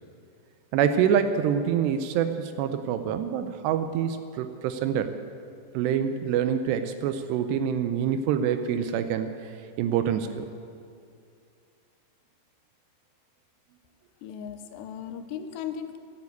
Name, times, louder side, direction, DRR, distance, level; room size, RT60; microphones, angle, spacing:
voice 1, 0.7-5.1 5.7-9.3 9.8-10.5, right 8 dB, 80° right, 9 dB, 2.7 m, -26 dB
voice 2, 14.2-16.0, left 8 dB, 80° left, 9 dB, 2.9 m, -37 dB
14.5 x 9.7 x 8.3 m, 2.4 s
omnidirectional pair, 5.1 m